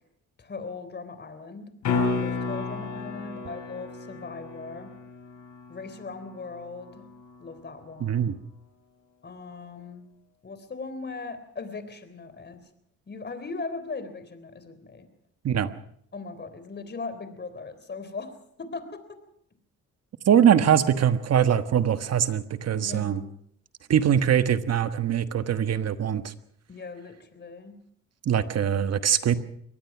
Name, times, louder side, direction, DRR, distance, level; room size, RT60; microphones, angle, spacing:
voice 1, 0.4-1.7 2.2-4.9 5.7-7.0 7.4-8.2 9.2-10.1 10.4-12.6 13.1-15.1 16.1-19.2 22.8-23.3 26.7-27.8, left 4 dB, 35° left, 11 dB, 3.5 m, -39 dB
sound 1, 1.8-7.9 12.5-12.6, left 4 dB, 75° left, 5.3 m, -33 dB
voice 2, 8.0-8.3 15.4-15.7 20.3-23.2 23.9-26.3 28.2-29.4, right 9 dB, 55° right, 11 dB, 1.4 m, -22 dB
23.5 x 18.5 x 6.0 m, 0.67 s
cardioid pair, 90°, 30 cm